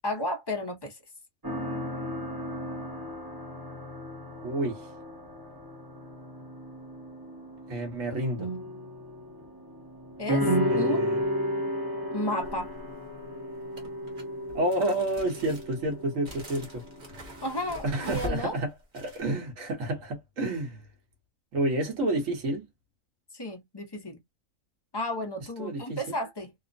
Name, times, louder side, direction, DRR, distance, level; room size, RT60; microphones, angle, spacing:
voice 1, 0.0-1.0 10.2-10.5 10.8-11.0 12.1-12.7 17.4-18.5 23.3-24.2 24.9-26.5, left 1 dB, 30° left, 0.5 m, -32 dB
sound 1, 1.4-18.1, equal, 20° right, 0.6 m, -34 dB
voice 2, 4.4-4.8 7.7-8.5 10.7-11.2 14.5-16.8 17.8-20.8 21.5-22.7 25.6-26.1, right 1 dB, 70° right, 1.4 m, -30 dB
Box Rustling, 12.4-12.9 13.7-19.2, left 1 dB, 40° right, 1.1 m, -43 dB
3.0 x 2.0 x 2.4 m
omnidirectional pair, 1.4 m